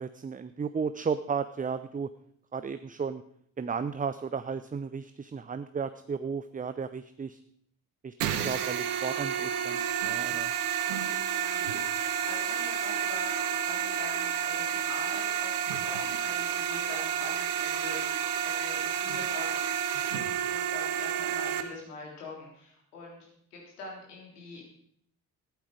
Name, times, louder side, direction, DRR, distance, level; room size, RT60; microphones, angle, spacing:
voice 1, 0.0-2.1 2.5-3.2 3.6-7.4 8.0-10.5, right 6 dB, 20° right, 12 dB, 0.6 m, -34 dB
sound 1, 8.2-21.6, right 9 dB, 75° right, 1.1 m, -30 dB
voice 2, 11.3-11.7 12.0-19.6 20.5-24.6, left 3 dB, 80° left, -2 dB, 3.7 m, -44 dB
14.5 x 11.5 x 5.1 m, 0.68 s
figure-of-eight pair, 40°, 45 cm